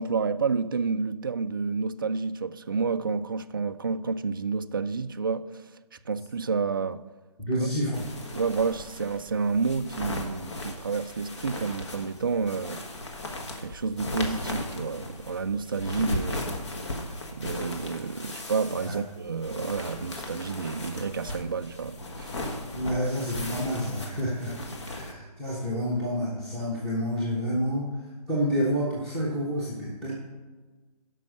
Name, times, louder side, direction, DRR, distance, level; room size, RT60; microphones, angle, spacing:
voice 1, 0.0-5.6 6.1-7.0 8.3-12.8 13.6-16.6 17.3-22.3, right 5 dB, 35° right, 0.4 m, -29 dB
voice 2, 7.4-8.1 18.8-19.0 22.7-24.6 24.8-30.1, equal, 5° left, 1.1 m, -29 dB
sound 1, 7.9-25.1, left 2 dB, 45° left, 1.6 m, -37 dB
12.0 x 5.4 x 6.3 m
figure-of-eight pair, 155°, 20 cm